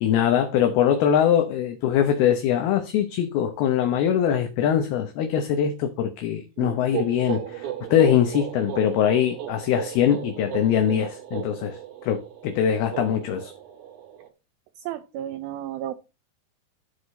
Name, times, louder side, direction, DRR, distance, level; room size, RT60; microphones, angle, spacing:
voice 1, 0.0-13.5, left 9 dB, 75° left, 2.8 m, -22 dB
sound 1, 6.6-14.3, right 11 dB, 60° right, 2.2 m, -35 dB
voice 2, 14.8-15.9, right 12 dB, 80° right, 2.3 m, -32 dB
13.5 x 5.0 x 4.2 m
omnidirectional pair, 4.8 m